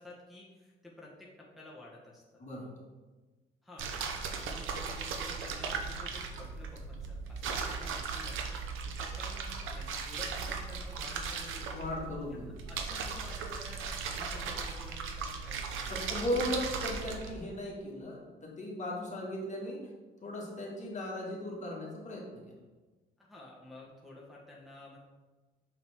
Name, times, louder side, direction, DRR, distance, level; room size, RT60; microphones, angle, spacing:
voice 1, 0.0-2.4 3.6-3.9 4.5-16.0 23.2-25.0, left 1 dB, ahead, -6 dB, 1.3 m, -51 dB
sound 1, 3.8-17.3, right 5 dB, 85° right, 0.8 m, -37 dB
voice 2, 11.7-12.5 15.9-19.8 20.2-22.4, left 1 dB, 35° left, -3 dB, 2.0 m, -37 dB
6.4 x 5.6 x 3.6 m, 1.2 s
cardioid pair, 90°, 20 cm